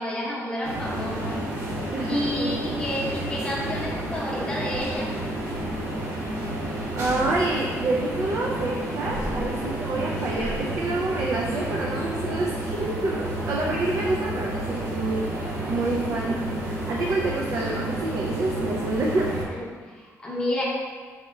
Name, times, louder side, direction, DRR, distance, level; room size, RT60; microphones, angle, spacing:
voice 1, 0.0-1.4 2.0-5.1 19.3-20.6, left 1 dB, 15° left, -5 dB, 0.8 m, -30 dB
sound 1, 0.6-19.4, right 1 dB, 65° right, 1.1 m, -30 dB
voice 2, 1.9-2.8 7.0-19.3, right 2 dB, 50° right, -3 dB, 0.4 m, -28 dB
4.1 x 2.4 x 4.7 m, 1.5 s
cardioid pair, 165°, 6 cm